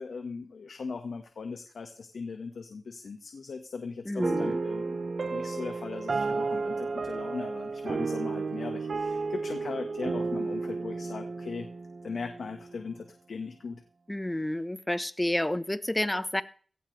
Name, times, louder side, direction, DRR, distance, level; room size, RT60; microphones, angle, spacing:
voice 1, 0.0-5.0 5.3-11.7 12.0-13.8, left 5 dB, 80° left, 5 dB, 1.4 m, -39 dB
voice 2, 4.1-4.6 14.1-16.4, left 1 dB, 15° left, 13 dB, 1.1 m, -30 dB
sound 1, 4.2-12.7, right 4 dB, 60° right, 0.9 m, -32 dB
17.5 x 15.5 x 3.3 m, 0.43 s
cardioid pair, 55°, 0 cm